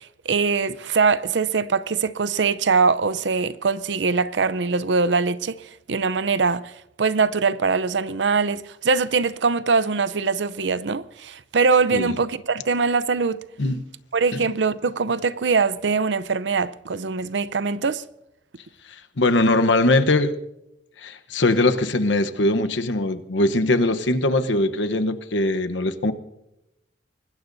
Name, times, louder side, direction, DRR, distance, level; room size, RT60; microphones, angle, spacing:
voice 1, 0.0-5.5 5.9-6.7 7.0-13.4 14.1-18.0, right 4 dB, 75° right, 0.6 m, -22 dB
voice 2, 19.2-20.3 21.0-26.1, left 2 dB, 90° left, 1.0 m, -21 dB
24.5 x 20.0 x 2.7 m
head